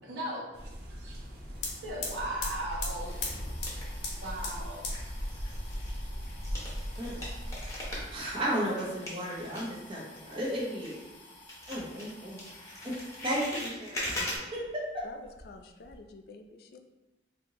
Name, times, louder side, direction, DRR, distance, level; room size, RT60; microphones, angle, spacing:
voice 1, 0.0-6.2, right 1 dB, 85° right, -4 dB, 1.1 m, -40 dB
sound 1, 0.5-8.2, equal, 65° right, 0.8 m, -39 dB
sound 2, 1.5-13.5 13.9-14.7 15.0-16.0, left 3 dB, 80° left, 0.9 m, -44 dB
sound 3, 1.5-2.1 2.7-4.6 4.8-11.2 11.5-14.4, left 1 dB, 15° left, 0.9 m, -41 dB
voice 2, 7.6-11.0 11.7-12.4 12.8-12.9 13.2-14.2 14.5-15.0, equal, 30° right, -5 dB, 0.9 m, -34 dB
voice 3, 15.4-16.8, left 3 dB, 60° left, 5 dB, 0.3 m, -49 dB
4.2 x 2.8 x 2.9 m, 1.0 s
head